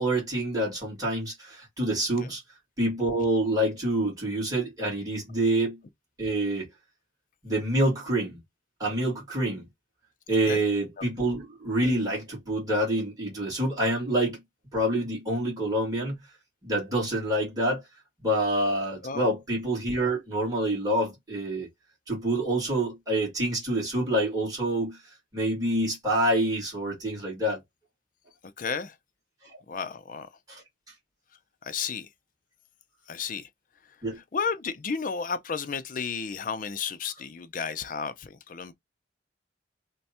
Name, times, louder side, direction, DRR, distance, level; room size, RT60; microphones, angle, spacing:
voice 1, 0.0-2.4 2.8-5.8 6.2-6.7 7.4-8.4 8.8-9.6 10.3-14.4 14.7-16.1 16.6-17.8 18.2-21.7 22.1-25.0 25.3-27.6 29.4-29.6 30.5-30.6 34.0-34.2, right 1 dB, 20° right, 2.1 m, -27 dB
voice 2, 28.6-28.9 29.7-30.3 31.6-32.1 33.1-33.5 34.3-38.7, left 5 dB, 45° left, 0.5 m, -32 dB
3.4 x 2.2 x 4.2 m
head